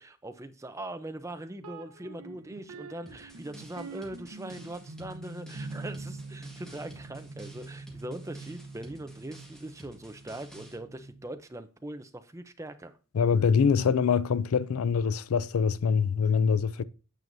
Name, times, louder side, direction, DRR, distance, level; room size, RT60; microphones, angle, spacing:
voice 1, 0.0-12.9, right 1 dB, 15° right, 0.6 m, -41 dB
sound 1, 1.6-11.4, right 3 dB, 85° right, 1.0 m, -45 dB
sound 2, 3.1-10.8, right 1 dB, 5° left, 1.5 m, -52 dB
voice 2, 13.1-16.8, left 6 dB, 75° left, 0.4 m, -24 dB
9.1 x 7.5 x 2.6 m
head